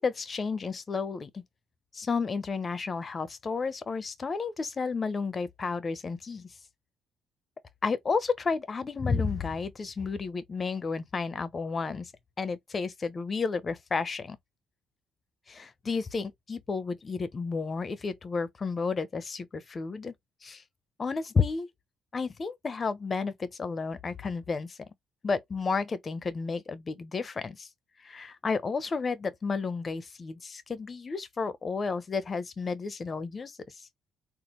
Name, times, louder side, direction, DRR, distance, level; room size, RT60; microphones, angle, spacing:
voice 1, 0.0-1.4 1.9-6.5 7.8-12.1 12.4-14.4 15.5-20.1 20.4-20.6 21.0-21.7 22.1-24.8 25.2-27.7 28.0-33.9, left 4 dB, 40° left, 1.0 m, -32 dB
4.2 x 2.4 x 3.2 m
supercardioid pair, 60°, 0 cm